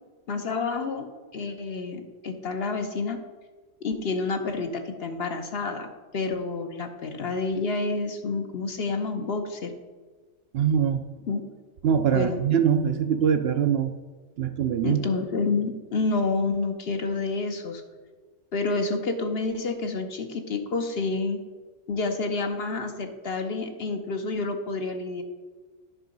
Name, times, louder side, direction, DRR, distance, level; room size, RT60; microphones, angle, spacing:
voice 1, 0.3-1.1 1.3-3.2 3.8-9.7 11.3-11.5 12.1-12.4 14.8-17.8 18.5-21.4 21.9-25.2, left 3 dB, 55° left, 5 dB, 1.1 m, -29 dB
voice 2, 10.5-11.0 11.8-13.9 14.4-15.0, right 8 dB, 65° right, 9 dB, 0.7 m, -23 dB
9.8 x 5.7 x 5.2 m, 1.3 s
omnidirectional pair, 1.3 m